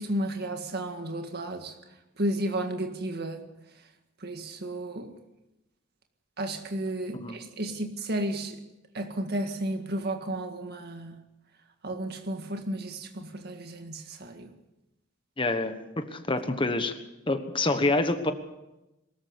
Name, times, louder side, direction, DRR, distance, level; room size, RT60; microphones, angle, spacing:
voice 1, 0.0-1.8 2.2-3.4 4.2-5.1 6.4-8.6 8.9-11.2 11.8-14.5, right 1 dB, 55° right, 1.9 m, -33 dB
voice 2, 15.4-17.0 17.3-18.3, left 2 dB, 25° left, 1.3 m, -27 dB
22.5 x 14.0 x 8.2 m
head